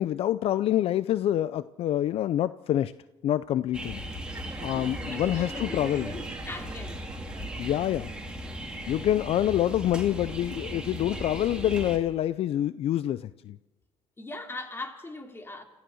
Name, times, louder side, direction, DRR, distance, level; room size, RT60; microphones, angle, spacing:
voice 1, 0.0-2.9 3.2-4.0 4.6-6.1 7.6-8.1 8.9-13.6, left 12 dB, 60° left, 0.6 m, -26 dB
sound 1, 3.7-12.0, right 1 dB, 10° right, 3.8 m, -37 dB
Chuckle chortle, 4.2-8.3, right 4 dB, 25° right, 3.0 m, -46 dB
voice 2, 5.0-7.0 14.2-15.6, left 2 dB, 20° left, 3.2 m, -39 dB
26.5 x 15.0 x 6.4 m
cardioid pair, 105°, 11 cm